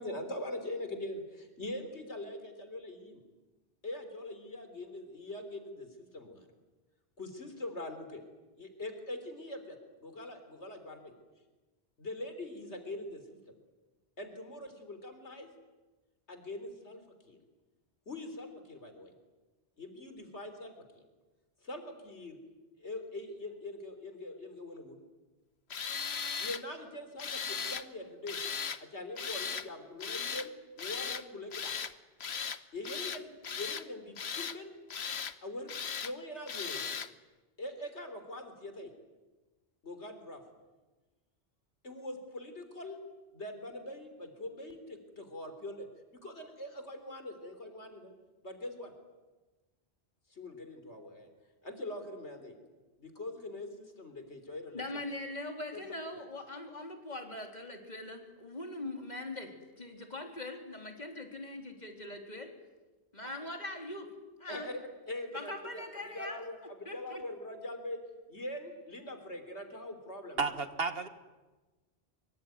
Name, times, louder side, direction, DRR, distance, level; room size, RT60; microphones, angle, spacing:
voice 1, 0.0-3.2 3.8-6.5 7.2-8.2 8.6-11.1 12.0-13.4 14.2-15.5 16.3-17.4 18.1-19.1 19.8-21.0 21.6-22.4 22.8-25.0 26.4-28.4 28.8-31.7 32.7-34.8 35.4-35.7 36.0-37.0 37.6-38.9 39.8-40.4 41.8-43.0 43.3-45.9 46.1-48.1 48.4-48.9 50.3-51.3 51.6-52.6 53.0-54.8 55.7-55.8 63.2-63.3 64.5-64.8 65.1-65.8 66.1-68.0 68.3-70.4, left 1 dB, 90° left, 8 dB, 4.0 m, -43 dB
Tools, 25.7-26.6 27.2-27.9 28.3-28.8 29.2-29.7 30.0-30.5 30.8-31.2 31.5-31.9 32.2-32.6 32.8-33.8 34.2-34.6 34.9-35.3 35.7-36.1 36.5-37.1, left 6 dB, 70° left, 1.3 m, -37 dB
voice 2, 54.7-62.5 63.1-64.1 64.4-64.7 65.3-66.4 66.9-67.2, left 2 dB, 40° left, 3 dB, 3.8 m, -42 dB
voice 3, 70.4-71.1, right 4 dB, 60° right, 9 dB, 1.9 m, -32 dB
26.0 x 24.0 x 9.5 m, 1.2 s
omnidirectional pair, 1.1 m